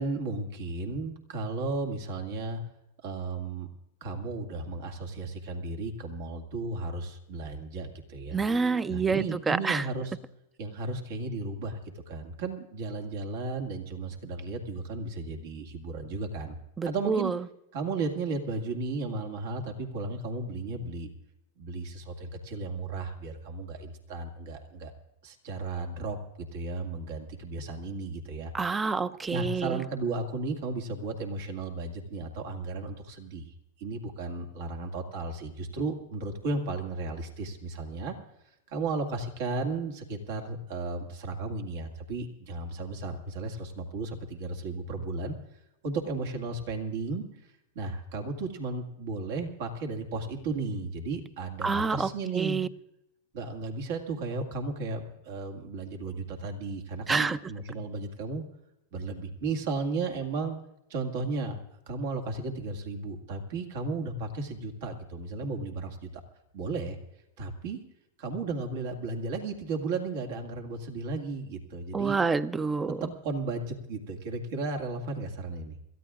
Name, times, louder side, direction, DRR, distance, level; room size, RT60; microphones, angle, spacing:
voice 1, 0.0-2.6 3.0-3.7 4.0-8.4 8.9-10.1 10.6-11.8 12.1-16.6 16.8-17.3 17.7-21.1 21.6-24.9 25.2-28.5 29.3-38.2 38.7-45.4 45.8-47.2 47.8-52.6 53.3-58.4 58.9-60.6 60.9-61.6 61.9-66.2 66.5-67.0 67.4-67.8 68.2-72.2 72.9-75.8, right 3 dB, 65° right, 4 dB, 2.1 m, -34 dB
voice 2, 8.3-9.9 16.8-17.4 28.5-29.8 51.6-52.7 57.1-57.4 71.9-73.0, right 4 dB, 15° right, 16 dB, 0.5 m, -28 dB
28.0 x 14.0 x 2.5 m, 0.85 s
hypercardioid pair, 115°, 0 cm